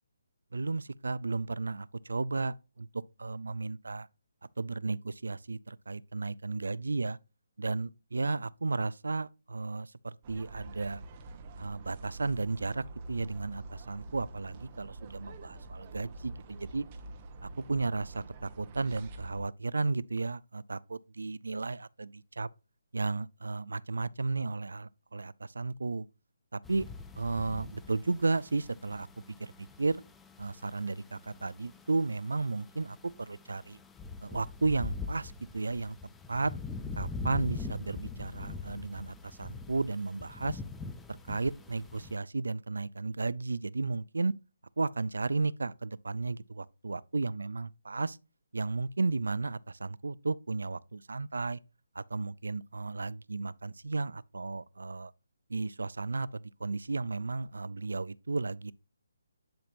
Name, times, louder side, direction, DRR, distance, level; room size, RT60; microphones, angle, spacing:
voice 1, 0.5-2.9 3.2-4.1 4.6-7.2 7.6-11.0 11.6-16.8 17.4-22.5 22.9-26.1 26.5-26.9 27.2-29.1 29.4-29.5 29.8-30.0 30.4-33.8 34.2-36.0 36.3-36.5 37.0-40.6 41.3-44.3 44.8-48.2 48.5-51.6 52.0-55.1 55.5-58.7, right 3 dB, 85° right, 0.4 m, -34 dB
sound 1, 10.2-19.4, right 2 dB, 30° right, 0.9 m, -46 dB
sound 2, 26.6-42.2, left 3 dB, 5° left, 0.5 m, -43 dB
10.5 x 4.4 x 2.6 m
hypercardioid pair, 160°, 0 cm